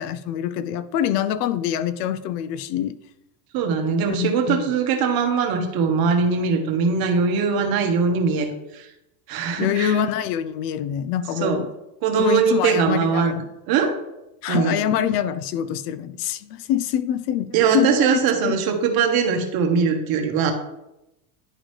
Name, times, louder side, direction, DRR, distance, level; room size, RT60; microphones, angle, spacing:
voice 1, 0.0-3.0 4.1-4.6 9.6-11.7 12.2-13.4 14.4-18.1 18.4-18.6, left 10 dB, 85° left, 0.7 m, -25 dB
voice 2, 3.5-8.9 9.3-10.0 11.4-11.6 12.0-13.4 13.7-13.9 14.5-14.8 17.5-20.5, right 5 dB, 50° right, 1.3 m, -21 dB
11.0 x 3.8 x 3.2 m
cardioid pair, 135°, 46 cm